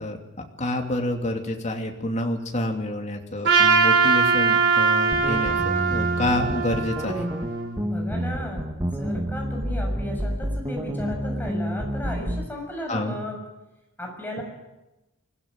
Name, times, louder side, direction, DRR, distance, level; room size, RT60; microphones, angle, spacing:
voice 1, 0.0-7.3 12.9-13.2, left 1 dB, 35° left, 3 dB, 2.8 m, -28 dB
Trumpet, 3.4-7.7, right 5 dB, 60° right, 4.1 m, -21 dB
sound 1, 5.1-12.5, equal, 15° right, 1.5 m, -29 dB
voice 2, 7.8-13.4 14.0-14.4, left 1 dB, 10° left, 1 dB, 6.7 m, -35 dB
24.0 x 17.0 x 7.7 m, 0.99 s
head